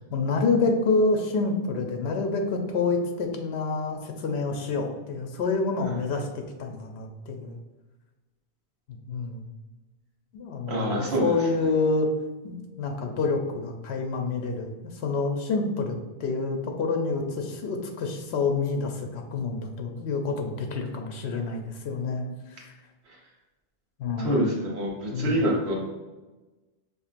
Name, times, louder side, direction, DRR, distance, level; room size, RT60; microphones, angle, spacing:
voice 1, 0.1-7.6 8.9-9.5 10.3-12.1 12.4-22.7 24.0-24.4 25.1-25.4, left 3 dB, 75° left, 3 dB, 0.8 m, -28 dB
voice 2, 10.7-11.3 24.2-25.8, right 1 dB, 75° right, -2 dB, 1.2 m, -26 dB
5.2 x 2.5 x 2.5 m, 1.2 s
omnidirectional pair, 1.1 m